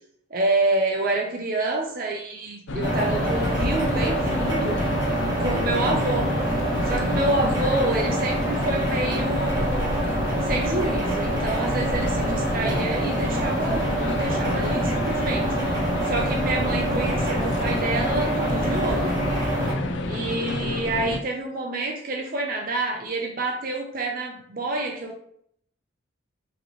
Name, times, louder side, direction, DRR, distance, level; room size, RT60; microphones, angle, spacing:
voice 1, 0.3-4.8 5.4-6.3 6.9-10.0 10.4-19.2 20.0-25.2, right 2 dB, 45° right, 1 dB, 0.6 m, -28 dB
sound 1, 2.7-21.2, left 2 dB, 60° left, 0.4 m, -29 dB
sound 2, 2.8-19.7, right 1 dB, 20° right, 1.2 m, -26 dB
5.1 x 3.0 x 3.0 m, 0.66 s
head